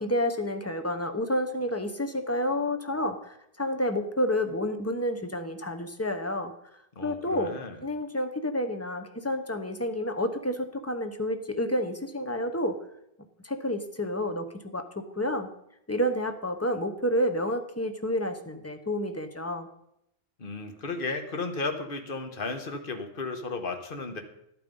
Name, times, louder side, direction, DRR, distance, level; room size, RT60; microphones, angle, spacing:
voice 1, 0.0-6.5 7.0-12.8 13.4-15.5 15.9-19.7, left 1 dB, 15° left, 7 dB, 0.8 m, -30 dB
voice 2, 6.9-7.8 20.4-24.2, left 3 dB, 55° left, 6 dB, 1.5 m, -34 dB
11.5 x 8.9 x 5.4 m, 0.78 s
omnidirectional pair, 1.1 m